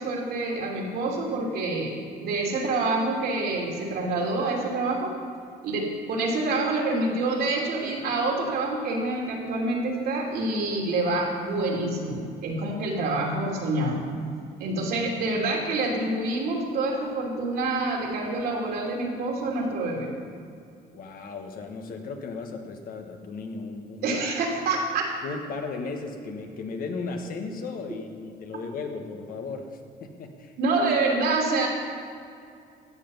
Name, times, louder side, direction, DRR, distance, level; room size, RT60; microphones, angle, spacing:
voice 1, 0.0-5.2 5.6-14.1 14.6-20.1 24.0-25.0 30.6-31.7, right 2 dB, 70° right, -1 dB, 2.9 m, -27 dB
voice 2, 20.9-24.2 25.2-30.5, left 4 dB, 60° left, 4 dB, 1.5 m, -36 dB
16.0 x 7.1 x 5.6 m, 2.4 s
cardioid pair, 110°, 17 cm